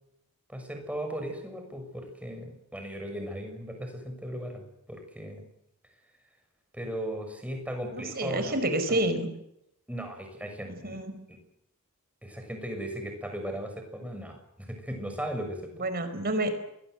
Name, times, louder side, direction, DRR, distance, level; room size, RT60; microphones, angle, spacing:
voice 1, 0.5-5.5 6.7-8.6 8.9-9.0 9.9-11.0 11.3-11.4 12.2-15.8, equal, 5° right, 4 dB, 6.4 m, -37 dB
voice 2, 7.9-9.3 10.7-11.2 15.8-16.5, right 1 dB, 45° right, 9 dB, 4.8 m, -29 dB
28.0 x 22.0 x 8.0 m, 0.81 s
head